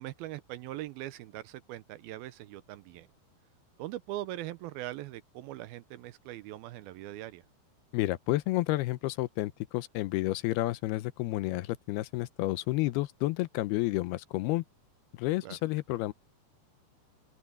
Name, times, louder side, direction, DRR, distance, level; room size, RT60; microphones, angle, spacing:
voice 1, 0.0-3.1 3.8-7.4 15.4-15.6, right 14 dB, 80° right, 2.4 m, -41 dB
voice 2, 7.9-14.6 15.2-16.1, left 18 dB, 80° left, 2.6 m, -30 dB
open air
omnidirectional pair, 4.6 m